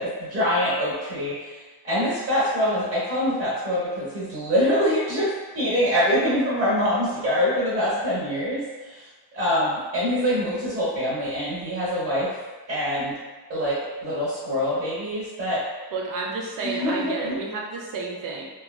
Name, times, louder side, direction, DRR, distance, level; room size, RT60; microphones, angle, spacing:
voice 1, 0.0-9.1 9.3-12.3 12.7-13.2 13.5-15.6 16.6-17.4, equal, 30° right, -9 dB, 0.9 m, -25 dB
voice 2, 15.9-18.5, right 3 dB, 55° right, -1 dB, 0.5 m, -30 dB
2.8 x 2.4 x 2.2 m, 1.3 s
cardioid pair, 175°, 41 cm